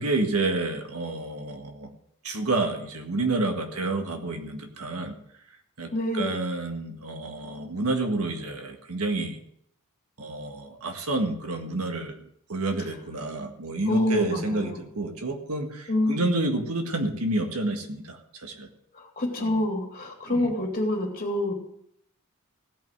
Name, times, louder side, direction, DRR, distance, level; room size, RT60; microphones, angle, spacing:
voice 1, 0.0-1.9 2.2-5.2 5.8-9.4 10.2-12.2 12.5-18.7 19.4-19.6 20.3-20.5, right 2 dB, 75° right, 4 dB, 1.7 m, -29 dB
voice 2, 5.9-6.3 13.9-14.8 15.9-16.2 19.2-21.5, left 1 dB, 40° left, 0 dB, 3.3 m, -26 dB
16.0 x 5.7 x 7.8 m, 0.70 s
head